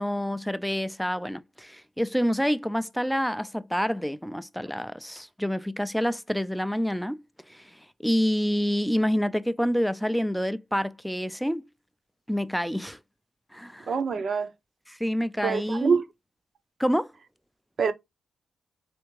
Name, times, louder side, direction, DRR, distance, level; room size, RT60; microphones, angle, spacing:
voice 1, 0.0-7.2 7.5-7.7 8.0-11.6 12.3-13.0 13.5-13.9 15.0-16.0 16.8-17.1, equal, ahead, 0.3 m, -27 dB
voice 2, 13.9-14.5 15.4-16.0 17.8-17.9, right 5 dB, 55° right, 0.7 m, -25 dB
3.4 x 3.4 x 3.1 m
cardioid pair, 80°, 0 cm